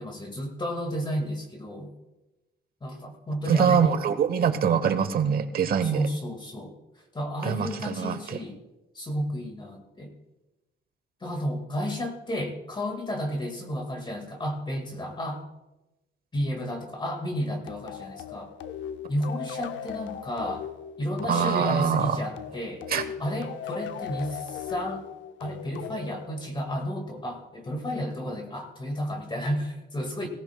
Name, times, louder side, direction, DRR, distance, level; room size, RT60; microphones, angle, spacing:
voice 1, 0.0-1.9 2.8-4.5 5.8-6.7 7.1-8.6 8.9-10.1 11.2-15.5 16.3-18.5 19.1-20.7 21.0-22.9 23.2-25.1 25.4-30.3, equal, 25° left, 3 dB, 1.9 m, -32 dB
voice 2, 3.5-6.1 7.4-8.4 21.3-22.2 22.9-23.0, right 7 dB, 55° right, 11 dB, 1.0 m, -24 dB
sound 1, 17.7-26.9, left 8 dB, 80° left, 0.7 m, -38 dB
17.5 x 15.0 x 2.3 m, 1.0 s
cardioid pair, 120°, 19 cm